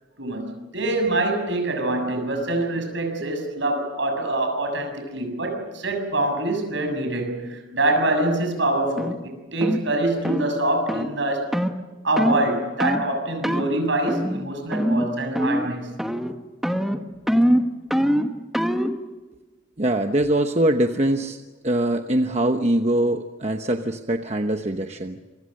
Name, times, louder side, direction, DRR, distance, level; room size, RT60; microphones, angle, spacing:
voice 1, 0.2-11.5 12.0-16.0, right 2 dB, 65° right, 5 dB, 6.9 m, -25 dB
sound 1, 9.0-9.2 9.6-9.8 10.2-10.5 10.9-11.1 11.5-11.8 12.2-12.4 12.8-13.1 13.4-13.7 14.1-14.4 14.7-15.1 15.4-15.7 16.0-16.3 16.6-19.0, equal, ahead, 1.3 m, -23 dB
voice 2, 19.8-21.4 21.6-25.2, right 1 dB, 35° right, 5 dB, 1.0 m, -23 dB
27.5 x 25.0 x 6.6 m, 1.3 s
head